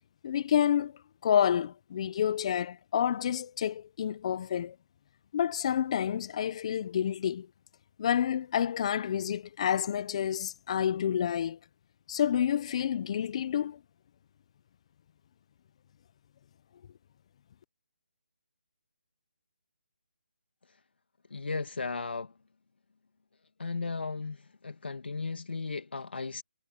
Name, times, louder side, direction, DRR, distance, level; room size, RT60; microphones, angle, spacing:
voice 1, 0.2-0.9 1.2-4.7 5.3-7.5 8.0-11.6 12.1-13.8, left 9 dB, 35° left, 0.9 m, -29 dB
voice 2, 21.3-22.3 23.6-24.4 24.6-26.4, left 4 dB, 80° left, 2.0 m, -35 dB
hypercardioid pair, 160°, 6 cm